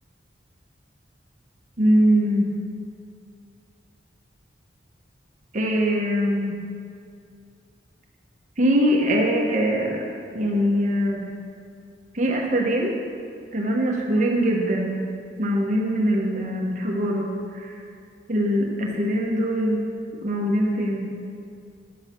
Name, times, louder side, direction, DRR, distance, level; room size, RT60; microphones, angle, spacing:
voice 1, 1.8-2.5 5.5-6.6 8.6-10.0 10.3-11.3 12.1-12.9 13.5-15.0 15.4-17.8 18.3-19.8 20.2-21.1, equal, 40° right, 0 dB, 1.1 m, -22 dB
11.5 x 8.0 x 5.8 m, 2.4 s
head